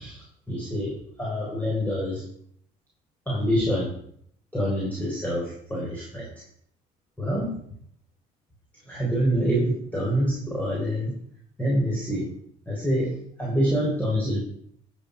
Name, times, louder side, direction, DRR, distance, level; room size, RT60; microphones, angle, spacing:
voice 1, 0.0-2.2 3.3-4.0 4.5-6.4 7.2-7.5 8.9-11.2 11.6-12.3 12.7-14.4, equal, 10° left, -4 dB, 4.2 m, -26 dB
13.0 x 7.7 x 5.1 m, 0.65 s
cardioid pair, 110°, 17 cm